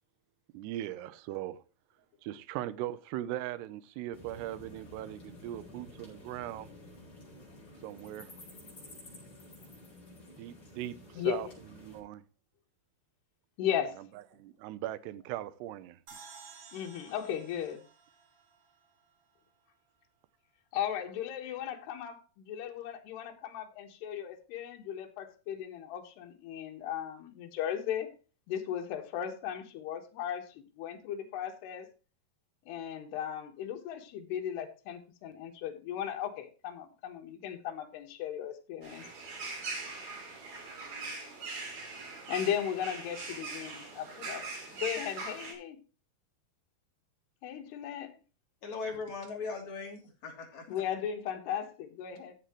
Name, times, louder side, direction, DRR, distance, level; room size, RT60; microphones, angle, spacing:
voice 1, 0.5-1.6 2.2-6.7 7.8-8.3 10.3-11.5 11.8-12.2 14.3-16.0, right 13 dB, 85° right, 2.8 m, -39 dB
sound 1, 4.1-12.0, left 1 dB, 25° left, 5.7 m, -51 dB
voice 2, 11.2-11.5 13.6-14.0 16.7-17.8 20.7-28.1 28.5-31.9 32.7-39.1 42.3-45.8 47.4-48.2 50.7-52.4, left 9 dB, 80° left, 3.5 m, -36 dB
sound 2, 16.1-19.4, right 5 dB, 40° right, 2.8 m, -54 dB
sound 3, 38.8-45.5, right 3 dB, 65° right, 5.1 m, -41 dB
voice 3, 48.6-50.6, left 4 dB, 45° left, 4.0 m, -39 dB
15.0 x 7.7 x 3.0 m
omnidirectional pair, 4.7 m